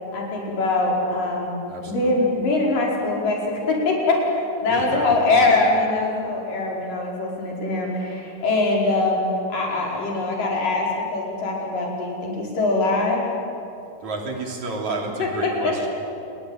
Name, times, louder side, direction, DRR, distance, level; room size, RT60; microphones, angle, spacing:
voice 1, 0.1-1.6 1.9-13.2 15.2-15.9, left 2 dB, 75° left, -2 dB, 6.8 m, -23 dB
voice 2, 1.7-2.2 4.7-5.5 14.0-15.9, right 3 dB, 60° right, 1 dB, 4.4 m, -31 dB
29.0 x 21.5 x 9.2 m, 2.7 s
omnidirectional pair, 3.9 m